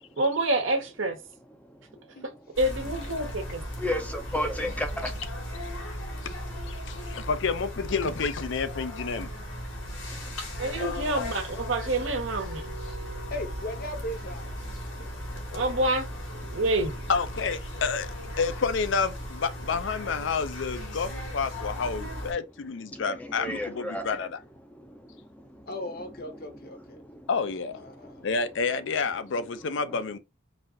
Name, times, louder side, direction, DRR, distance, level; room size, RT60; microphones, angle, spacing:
voice 1, 0.2-1.2 2.6-3.6 10.6-12.6 15.5-16.1 16.4-16.9, right 1 dB, 70° right, 1.2 m, -27 dB
sound 1, 2.5-22.3, equal, 85° left, 1.7 m, -37 dB
voice 2, 3.8-5.1 23.1-24.1, left 1 dB, 5° left, 0.5 m, -31 dB
voice 3, 6.7-9.3 17.1-24.3 27.3-27.8 28.2-30.2, left 5 dB, 65° left, 0.5 m, -29 dB
voice 4, 10.8-11.3 13.3-14.5 15.0-15.1 25.7-27.0 27.7-28.3, left 2 dB, 45° left, 0.8 m, -37 dB
sound 2, 12.4-17.2, right 1 dB, 50° right, 0.7 m, -49 dB
4.1 x 2.5 x 3.8 m
head